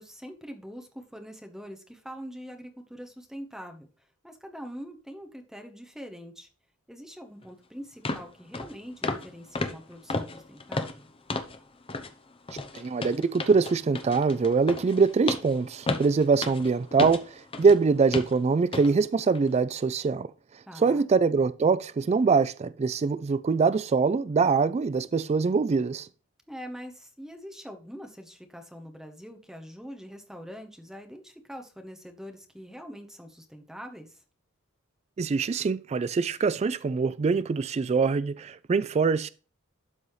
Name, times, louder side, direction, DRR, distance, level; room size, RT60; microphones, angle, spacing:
voice 1, 0.0-3.9 4.2-6.5 6.9-11.1 20.7-21.1 26.5-34.2, equal, ahead, 1.0 m, -43 dB
sound 1, 7.4-7.5 8.1-8.3 8.5-8.7 9.0-9.3 9.6-11.6 11.9-12.1 12.5-17.8 18.1-18.4 18.7-18.9 19.4-19.5, left 3 dB, 25° left, 0.7 m, -33 dB
voice 2, 12.8-20.3 20.8-26.1 35.2-39.3, right 4 dB, 30° right, 0.3 m, -24 dB
12.0 x 4.1 x 3.2 m
head